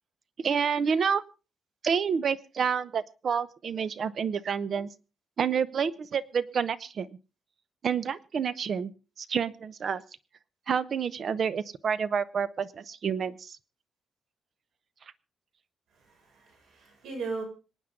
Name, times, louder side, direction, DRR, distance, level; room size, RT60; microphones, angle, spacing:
voice 1, 0.4-1.2 1.8-4.9 5.4-7.1 7.8-8.9 9.3-10.0 10.7-13.6, right 6 dB, 50° right, 16 dB, 0.8 m, -28 dB
voice 2, 16.0-17.4, right 4 dB, 80° right, 3 dB, 6.3 m, -38 dB
26.5 x 9.2 x 3.7 m, 0.33 s
cardioid pair, 140°, 0 cm